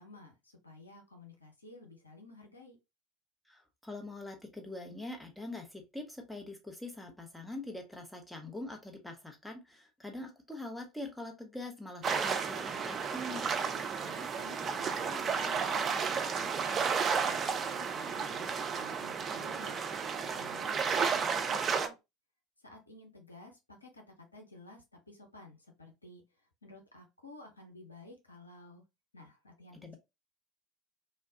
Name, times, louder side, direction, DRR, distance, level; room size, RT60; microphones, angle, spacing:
voice 1, 0.0-2.8 13.7-19.8 20.2-22.0 22.6-26.2 26.6-28.8 29.1-30.0, left 2 dB, 85° left, 0.7 m, -53 dB
voice 2, 3.5-13.5 29.8-30.0, left 2 dB, 5° left, 0.9 m, -43 dB
sound 1, 12.0-21.9, right 6 dB, 35° right, 0.5 m, -32 dB
3.2 x 2.3 x 2.8 m
figure-of-eight pair, 70°, 0 cm